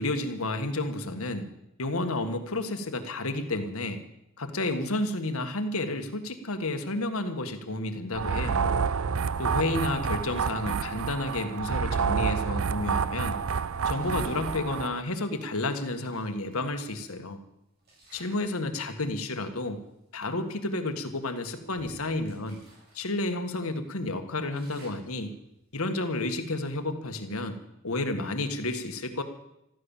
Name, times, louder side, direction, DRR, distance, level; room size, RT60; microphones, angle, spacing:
voice 1, 0.0-1.5 1.8-4.0 4.4-8.7 9.4-13.4 13.9-17.4 18.1-19.8 20.1-22.6 23.0-25.3 25.7-27.6 27.8-29.2, left 2 dB, 90° left, 7 dB, 1.7 m, -31 dB
sound 1, 8.1-15.0, right 6 dB, 85° right, 0.6 m, -29 dB
sound 2, 13.9-14.5 15.7-15.8 16.1-17.3 17.8-18.6 18.9-19.2 19.9-20.0 20.3-20.5 21.1-23.0 23.3-23.4 23.9-26.4, right 1 dB, 45° right, 7.0 m, -57 dB
14.5 x 13.5 x 7.3 m, 0.84 s
head